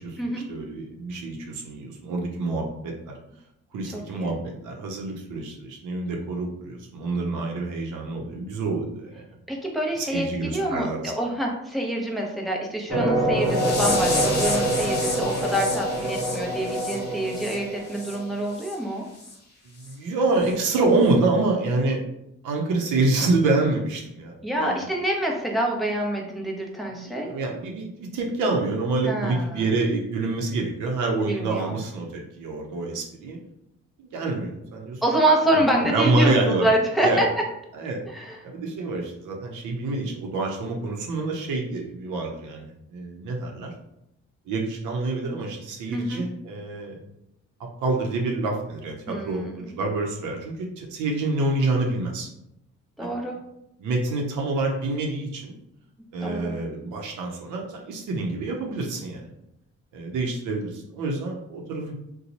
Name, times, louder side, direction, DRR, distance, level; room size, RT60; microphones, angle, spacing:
voice 1, 0.0-3.1 3.7-9.2 10.0-11.1 19.7-22.0 22.4-24.9 27.0-33.4 34.0-35.0 35.5-36.7 37.0-37.3 37.7-38.0 38.4-43.7 44.5-47.0 47.8-52.3 53.0-53.1 53.8-55.5 56.1-59.3 59.9-61.9, right 3 dB, 85° right, 0 dB, 0.7 m, -27 dB
voice 2, 3.9-4.4 9.5-19.1 24.4-27.3 29.0-29.6 31.2-31.8 35.0-37.3 38.1-38.4 45.9-46.2 49.1-49.6 53.0-53.4 56.2-56.5, right 1 dB, ahead, -1 dB, 0.8 m, -26 dB
sound 1, 12.9-18.3, right 1 dB, 40° right, 1.0 m, -26 dB
sound 2, 13.4-18.2 18.5-18.8 19.2-19.3 19.8-19.9 20.4-20.5, left 2 dB, 35° left, 1.2 m, -32 dB
2.9 x 2.2 x 4.0 m, 0.79 s
cardioid pair, 90°, 30 cm